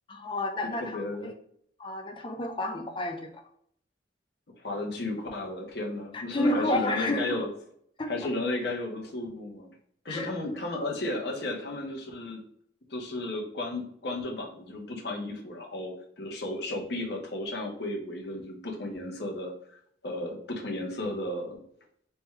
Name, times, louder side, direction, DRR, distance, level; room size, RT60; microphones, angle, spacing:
voice 1, 0.1-1.3 1.8-3.4 6.1-7.4 8.0-8.1 10.1-10.3, left 1 dB, 25° left, 6 dB, 0.4 m, -30 dB
voice 2, 0.8-1.3 4.6-7.5 8.1-9.7 10.0-12.4 12.9-19.8 20.0-21.6, left 2 dB, 60° left, 1 dB, 0.9 m, -34 dB
3.4 x 2.2 x 4.3 m, 0.65 s
head